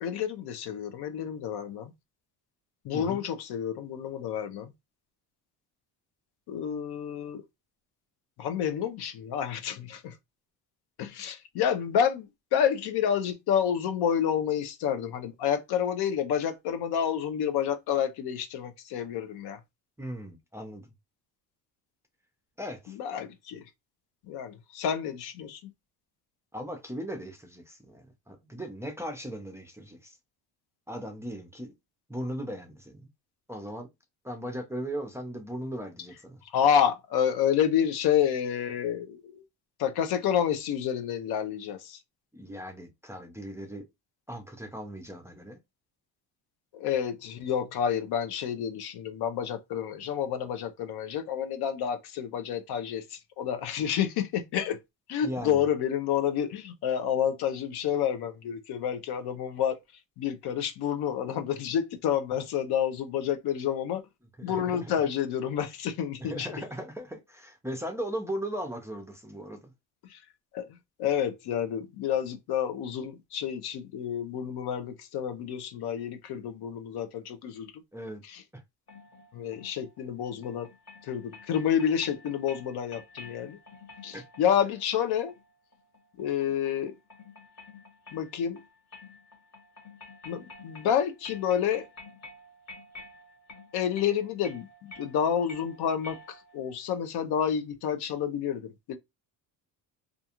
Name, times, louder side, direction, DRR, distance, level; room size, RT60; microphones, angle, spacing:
voice 1, 0.0-1.9 2.8-4.7 6.5-7.4 8.4-10.2 11.0-19.6 22.9-23.6 24.3-25.7 36.5-39.4 39.8-42.0 46.7-54.8 55.1-59.8 60.2-64.0 64.4-66.5 70.1-70.2 70.5-70.7 71.0-77.7 78.2-78.4 79.3-80.7 81.0-83.6 84.0-85.3 86.2-86.9 88.1-88.6 90.2-91.9 93.7-99.0, left 9 dB, 60° left, 0.6 m, -29 dB
voice 2, 20.0-20.9 22.6-23.0 26.5-30.2 30.9-31.7 32.1-33.1 33.5-33.9 34.2-36.4 42.3-43.9 44.3-45.6 55.2-55.6 64.4-64.9 66.2-69.7 77.9-78.2 78.5-78.6 84.1-84.2, equal, 5° right, 0.5 m, -38 dB
sound 1, 78.9-96.7, left 3 dB, 40° left, 1.2 m, -50 dB
2.5 x 2.3 x 2.8 m
cardioid pair, 95°, 43 cm